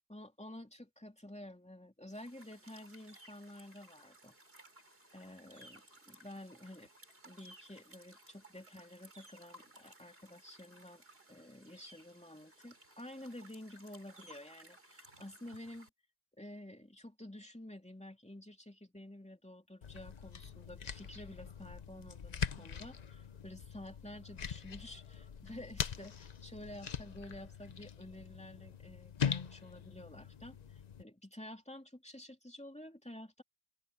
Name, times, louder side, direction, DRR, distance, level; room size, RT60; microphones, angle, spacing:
voice 1, 0.1-4.4 5.1-6.9 7.2-11.0 11.3-15.9 16.4-33.4, left 1 dB, 5° left, 2.5 m, -51 dB
sound 1, 2.1-15.9, right 1 dB, 55° right, 5.4 m, -59 dB
sound 2, 19.8-31.0, left 7 dB, 40° left, 0.7 m, -42 dB
open air
omnidirectional pair, 1.2 m